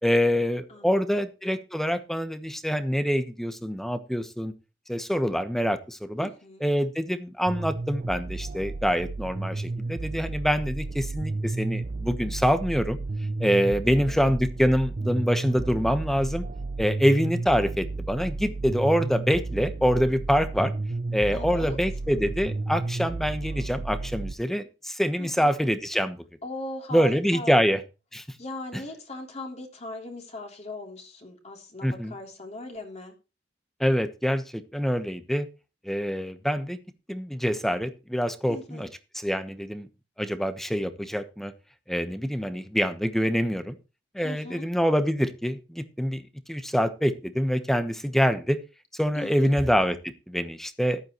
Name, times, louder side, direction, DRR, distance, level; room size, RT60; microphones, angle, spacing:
voice 1, 0.0-4.5 4.9-6.3 6.6-13.0 13.4-16.4 16.8-20.7 21.1-26.2 26.9-27.8 28.1-28.2 28.7-28.8 31.8-32.1 33.8-35.5 35.8-36.8 37.1-38.9 39.1-39.9 40.2-41.5 41.9-43.8 44.1-46.2 46.5-48.6 49.0-51.0, equal, ahead, 10 dB, 1.1 m, -25 dB
voice 2, 0.7-1.2 6.2-6.7 13.8-14.2 21.3-21.8 25.2-25.5 26.4-27.5 28.4-33.1 38.5-38.9 44.2-44.7 49.1-49.5, left 2 dB, 40° left, 2 dB, 3.3 m, -39 dB
sound 1, 7.5-24.3, right 3 dB, 45° right, 0.5 m, -32 dB
14.5 x 11.0 x 3.1 m, 0.30 s
head